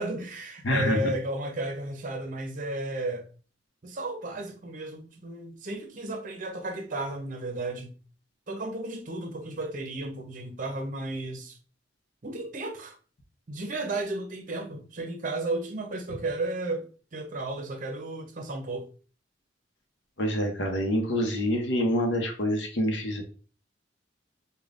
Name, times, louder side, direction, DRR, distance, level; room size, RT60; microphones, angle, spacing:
voice 1, 0.0-3.3 3.8-7.9 8.5-11.6 12.2-13.0 13.5-18.9, right 2 dB, 45° right, 0.7 m, -33 dB
voice 2, 0.6-1.1 20.2-23.2, equal, 75° left, 0.8 m, -26 dB
5.0 x 2.2 x 2.4 m
head